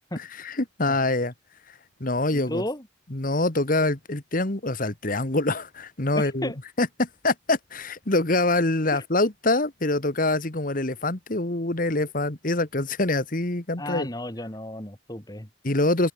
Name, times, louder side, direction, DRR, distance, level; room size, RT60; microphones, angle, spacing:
voice 1, 0.2-1.3 2.0-2.6 3.1-6.5 6.8-14.1 15.6-16.1, left 2 dB, 45° left, 1.8 m, -25 dB
voice 2, 2.3-2.9 6.1-6.6 8.9-9.0 13.8-15.5, left 1 dB, 20° left, 3.0 m, -33 dB
open air
head